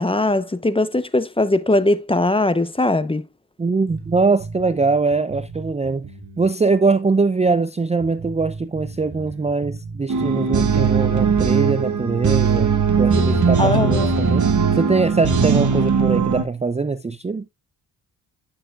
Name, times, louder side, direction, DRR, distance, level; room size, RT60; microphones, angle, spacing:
voice 1, 0.0-3.3 13.6-14.2, left 2 dB, 15° left, 0.8 m, -20 dB
voice 2, 3.6-6.1 6.4-17.4, right 4 dB, 15° right, 0.5 m, -22 dB
sound 1, 3.9-6.5 6.8-6.9 7.5-7.6 8.0-12.3 12.5-12.6 13.2-13.3 13.8-15.8, right 4 dB, 60° right, 2.3 m, -36 dB
sound 2, 10.1-16.4, right 5 dB, 45° right, 1.7 m, -19 dB
10.0 x 6.7 x 2.4 m
cardioid pair, 60°, 41 cm